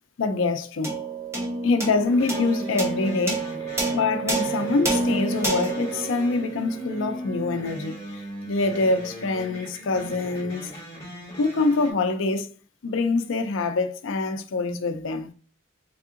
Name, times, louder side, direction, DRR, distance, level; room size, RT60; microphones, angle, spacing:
voice 1, 0.2-1.0 1.6-3.4 3.9-10.7 11.4-12.5 12.8-15.3, left 3 dB, 70° left, 0.4 m, -25 dB
sound 1, 0.8-7.4, right 2 dB, 15° right, 0.9 m, -29 dB
sound 2, 2.0-11.9, equal, 15° left, 1.7 m, -39 dB
3.6 x 3.4 x 2.4 m
head